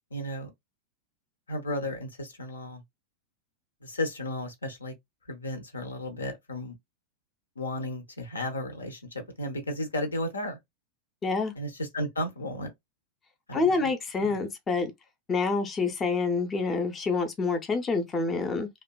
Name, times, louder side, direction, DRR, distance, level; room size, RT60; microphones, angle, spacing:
voice 1, 0.1-0.5 1.5-2.8 3.8-4.9 5.3-6.8 7.6-10.6 11.6-12.7 13.5-13.8 14.2-14.3, left 1 dB, 75° left, 0.7 m, -34 dB
voice 2, 11.2-11.5 13.5-14.9 15.3-18.7, left 4 dB, 20° left, 0.5 m, -27 dB
2.7 x 2.2 x 2.2 m
figure-of-eight pair, 90°, 0 cm